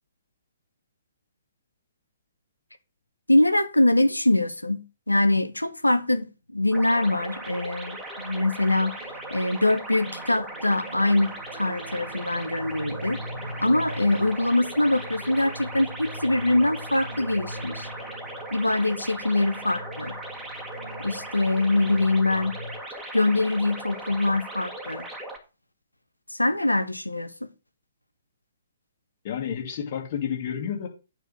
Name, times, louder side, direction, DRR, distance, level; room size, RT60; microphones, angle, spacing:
voice 1, 3.3-6.3 6.5-9.0 9.3-13.2 13.6-17.9 18.5-20.1 21.0-22.5 23.1-25.0 26.3-27.5, left 2 dB, 85° left, 0.8 m, -23 dB
sound 1, 6.7-25.4, right 2 dB, 5° right, 1.7 m, -38 dB
sound 2, 8.1-22.8, equal, 70° right, 1.3 m, -41 dB
voice 2, 29.2-30.9, left 8 dB, 40° left, 2.2 m, -30 dB
9.0 x 4.0 x 6.3 m
figure-of-eight pair, 125°, 0 cm